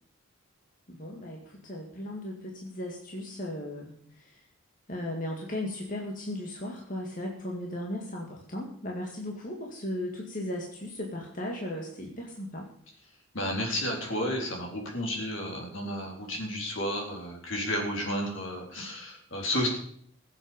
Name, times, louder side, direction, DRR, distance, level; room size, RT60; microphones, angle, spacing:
voice 1, 0.9-4.5 4.9-12.7, left 1 dB, 40° left, -1 dB, 2.1 m, -36 dB
voice 2, 13.3-19.7, equal, 70° left, 0 dB, 4.0 m, -32 dB
21.5 x 7.9 x 5.3 m, 0.63 s
head